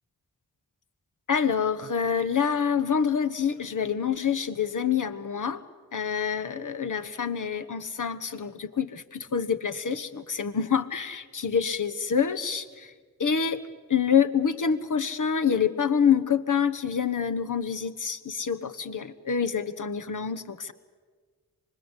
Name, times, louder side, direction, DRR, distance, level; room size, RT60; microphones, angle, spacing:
voice 1, 1.3-5.6 5.9-12.9 13.2-13.6 13.9-20.7, left 7 dB, 55° left, 11 dB, 1.3 m, -26 dB
25.0 x 20.5 x 8.2 m, 1.5 s
cardioid pair, 45°, 37 cm